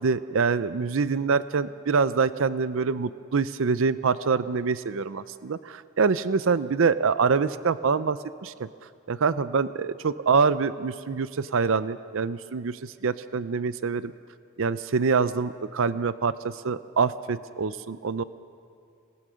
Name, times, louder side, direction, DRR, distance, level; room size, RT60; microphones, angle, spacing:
voice 1, 0.0-8.7 9.1-14.1 14.6-18.2, right 5 dB, 60° right, 14 dB, 0.5 m, -25 dB
27.0 x 19.5 x 6.3 m, 2.4 s
head